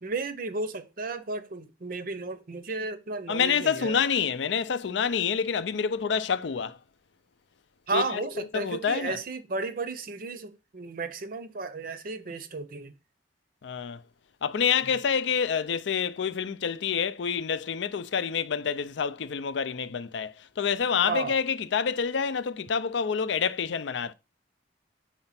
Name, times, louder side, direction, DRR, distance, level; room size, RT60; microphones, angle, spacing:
voice 1, 0.0-4.0 7.9-12.9 21.1-21.4, right 3 dB, 50° right, 0.6 m, -33 dB
voice 2, 3.3-6.8 7.9-8.3 8.5-9.2 13.6-14.0 14.4-24.1, left 6 dB, 70° left, 0.5 m, -27 dB
4.9 x 4.3 x 5.7 m
head